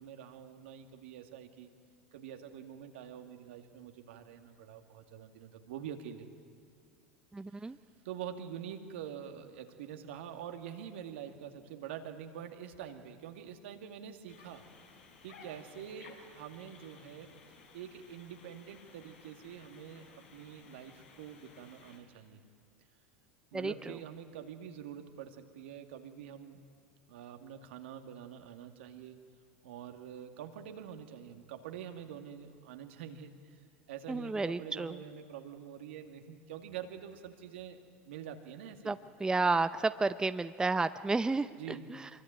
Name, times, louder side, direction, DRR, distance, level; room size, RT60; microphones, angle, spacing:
voice 1, 0.0-1.7 2.1-6.3 7.5-7.7 8.0-14.7 15.2-17.3 17.7-22.4 23.5-26.6 27.1-29.3 29.6-33.6 33.9-39.0 41.6-41.9, right 9 dB, 70° right, 6 dB, 2.1 m, -46 dB
voice 2, 7.3-7.8 23.5-24.0 34.1-34.9 38.9-42.1, right 3 dB, 10° right, 12 dB, 0.6 m, -32 dB
sound 1, 14.3-22.0, left 4 dB, 75° left, 5.1 m, -57 dB
24.5 x 23.0 x 9.0 m, 2.1 s
hypercardioid pair, 85°, 7 cm